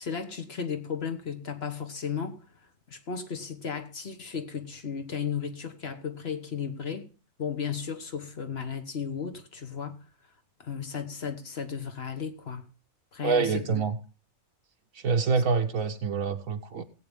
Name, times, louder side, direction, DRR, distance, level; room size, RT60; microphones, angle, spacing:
voice 1, 0.0-2.5 2.9-7.1 7.4-10.0 10.6-12.6 13.1-13.8, left 7 dB, 45° left, 1.4 m, -34 dB
voice 2, 13.2-14.0 15.0-16.8, right 5 dB, 70° right, 1.3 m, -26 dB
18.5 x 8.5 x 3.5 m
omnidirectional pair, 1.5 m